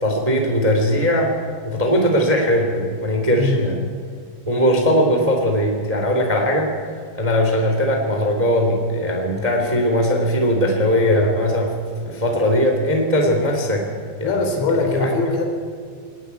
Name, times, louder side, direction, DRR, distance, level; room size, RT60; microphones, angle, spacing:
voice 1, 0.0-1.3 1.6-3.8 4.5-6.7 7.1-11.7 12.0-13.9 14.2-15.1, equal, 10° right, 2 dB, 2.0 m, -19 dB
voice 2, 3.4-3.7 14.2-15.4, left 3 dB, 70° left, 3 dB, 5.7 m, -21 dB
21.5 x 19.5 x 8.4 m, 2.2 s
omnidirectional pair, 5.3 m